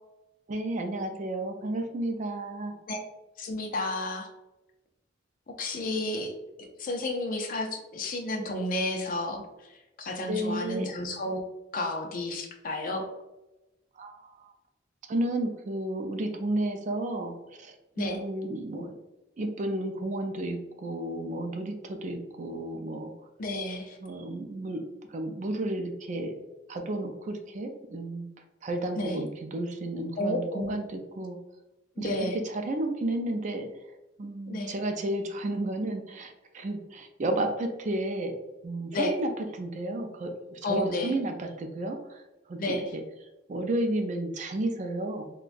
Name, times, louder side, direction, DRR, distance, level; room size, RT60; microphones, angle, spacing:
voice 1, 0.5-2.8 10.3-10.9 14.0-14.4 15.1-18.9 19.4-23.1 24.0-24.8 25.1-28.3 28.6-31.4 32.0-32.1 32.4-33.7 34.2-38.3 38.6-42.2 42.5-43.0 43.5-45.3, right 1 dB, 40° right, 5 dB, 0.4 m, -32 dB
voice 2, 3.4-4.3 5.6-6.3 6.6-9.4 10.0-11.4 11.7-13.1 18.0-18.2 23.4-24.0 28.9-29.2 30.2-30.8 32.0-32.4 34.5-34.7 38.9-39.1 40.6-41.1 42.6-42.9, left 1 dB, 45° left, 3 dB, 0.5 m, -31 dB
3.8 x 2.2 x 2.5 m, 0.99 s
head